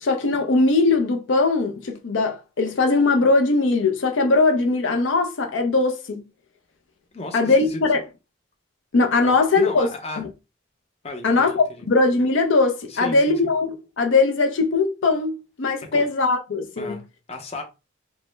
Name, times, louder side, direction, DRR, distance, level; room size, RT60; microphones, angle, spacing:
voice 1, 0.0-6.2 7.3-8.0 8.9-9.9 10.2-10.3 11.2-17.0, left 3 dB, 70° left, 0.5 m, -20 dB
voice 2, 7.1-7.8 9.2-10.2 11.0-11.8 12.9-13.5 15.9-16.1 16.8-17.0 17.3-17.6, left 2 dB, 30° left, 0.6 m, -34 dB
3.1 x 2.1 x 3.1 m
head